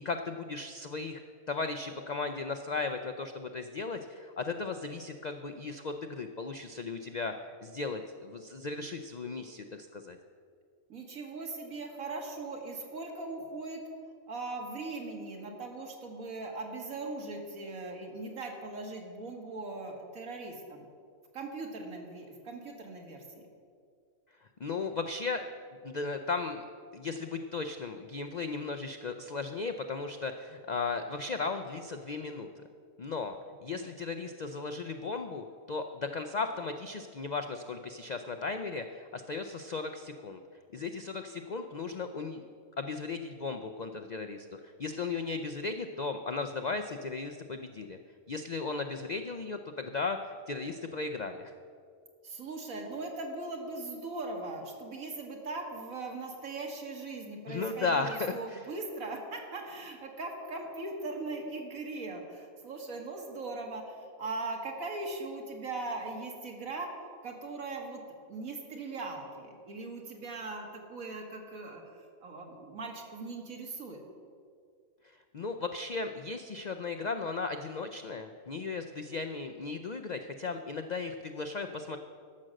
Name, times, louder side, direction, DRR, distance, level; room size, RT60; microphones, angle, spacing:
voice 1, 0.0-7.3 7.6-10.2 24.6-25.4 25.8-26.6 26.9-32.5 33.0-40.4 40.7-42.4 42.8-48.0 48.3-51.5 57.5-58.6 75.3-82.0, left 4 dB, 85° left, 7 dB, 0.3 m, -36 dB
voice 2, 10.9-13.8 14.3-20.8 21.3-23.2 33.7-33.9 52.2-66.9 67.2-68.0 68.3-74.0, right 3 dB, 75° right, 2 dB, 2.0 m, -40 dB
13.0 x 6.4 x 7.6 m, 2.2 s
omnidirectional pair, 1.5 m